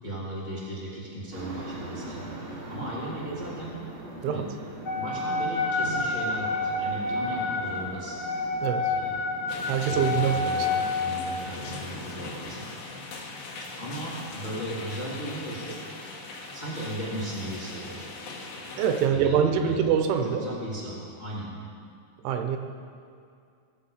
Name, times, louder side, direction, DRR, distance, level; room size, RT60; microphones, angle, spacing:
voice 1, 0.0-2.3 2.7-3.7 4.2-4.4 4.9-8.1 8.8-9.3 9.8-12.7 13.8-15.8 16.5-18.1 19.1-19.4 19.6-19.9 20.2-21.5, right 1 dB, 10° left, -6 dB, 2.2 m, -36 dB
sound 1, 1.3-12.5, right 2 dB, 60° right, 4.2 m, -42 dB
Wind instrument woodwind instrument, 4.8-11.3, left 3 dB, 45° left, 2.1 m, -29 dB
voice 2, 8.6-8.9 9.7-10.7 18.8-20.4 22.2-22.6, right 8 dB, 85° right, 5 dB, 3.2 m, -24 dB
sound 2, 9.5-19.1, left 3 dB, 70° left, 3.6 m, -40 dB
19.5 x 7.2 x 5.7 m, 2.3 s
omnidirectional pair, 5.3 m